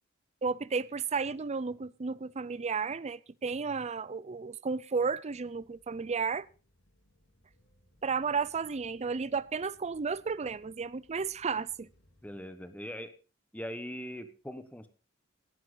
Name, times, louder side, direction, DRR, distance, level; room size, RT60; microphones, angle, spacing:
voice 1, 0.4-6.5 8.0-11.9, right 5 dB, 30° right, 0.5 m, -33 dB
sound 1, 5.3-12.4, equal, 80° left, 4.2 m, -67 dB
voice 2, 12.2-13.1 13.5-14.9, equal, 5° left, 1.3 m, -41 dB
17.0 x 10.5 x 4.0 m
head